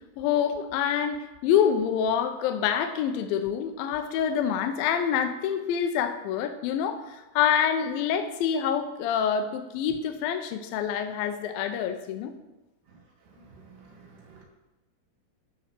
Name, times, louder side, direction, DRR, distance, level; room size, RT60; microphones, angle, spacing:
voice 1, 0.2-12.3, left 8 dB, 80° left, 7 dB, 2.1 m, -26 dB
voice 2, 13.5-14.4, right 4 dB, 90° right, -2 dB, 4.0 m, -52 dB
12.0 x 4.3 x 5.8 m, 1.1 s
omnidirectional pair, 4.7 m